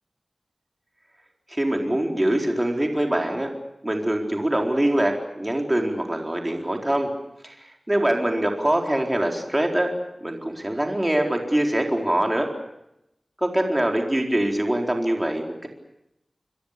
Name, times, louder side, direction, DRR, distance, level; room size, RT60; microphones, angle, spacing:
voice 1, 1.5-3.5 3.8-7.1 7.4-9.9 10.2-12.5 13.4-15.7, right 1 dB, 15° right, 2 dB, 4.3 m, -24 dB
29.5 x 23.0 x 6.8 m, 0.84 s
wide cardioid pair, 85°, 0 cm